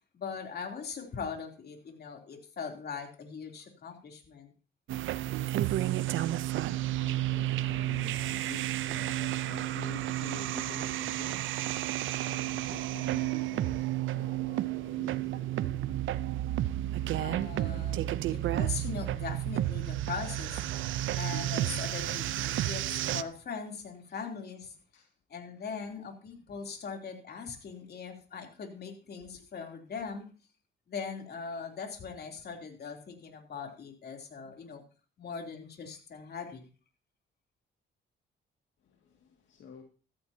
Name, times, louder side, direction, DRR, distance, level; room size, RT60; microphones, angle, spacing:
voice 1, 0.1-4.5 17.1-20.6 21.1-24.7 25.3-30.3 30.9-34.8 35.2-36.7, left 5 dB, 55° left, 3.2 m, -40 dB
sound 1, 4.9-23.2, right 14 dB, 80° right, 0.7 m, -31 dB
voice 2, 6.4-17.6 24.1-24.2 24.9-25.1 27.6-27.8 38.8-39.8, left 5 dB, 70° left, 2.2 m, -50 dB
14.5 x 14.0 x 2.8 m
cardioid pair, 90°, 20 cm